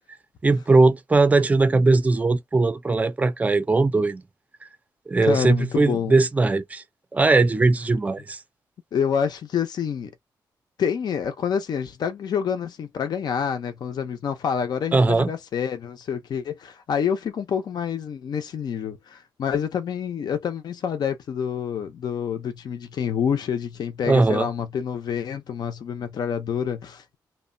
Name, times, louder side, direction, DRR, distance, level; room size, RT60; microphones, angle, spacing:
voice 1, 0.4-4.2 5.1-6.8 7.1-8.4 14.9-15.3 24.0-24.5, right 3 dB, 20° right, 0.4 m, -19 dB
voice 2, 5.2-6.1 8.9-10.1 10.8-27.2, left 7 dB, 65° left, 0.5 m, -27 dB
2.8 x 2.1 x 2.5 m
cardioid pair, 105°, 8 cm